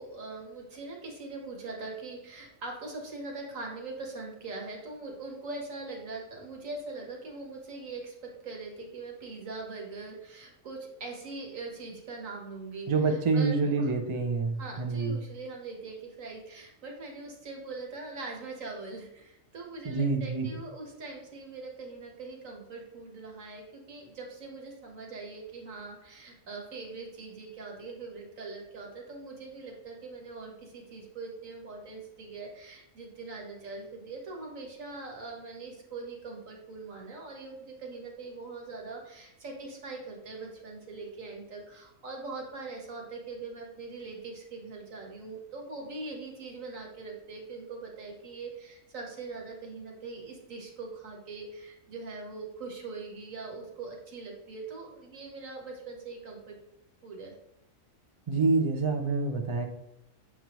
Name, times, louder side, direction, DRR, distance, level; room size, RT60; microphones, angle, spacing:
voice 1, 0.0-13.9 14.6-56.6 57.0-57.3, right 3 dB, 75° right, 0 dB, 1.8 m, -42 dB
voice 2, 12.9-15.2 19.8-20.5 58.3-59.6, right 3 dB, 35° right, 3 dB, 0.5 m, -27 dB
7.5 x 5.1 x 3.0 m, 0.82 s
omnidirectional pair, 1.4 m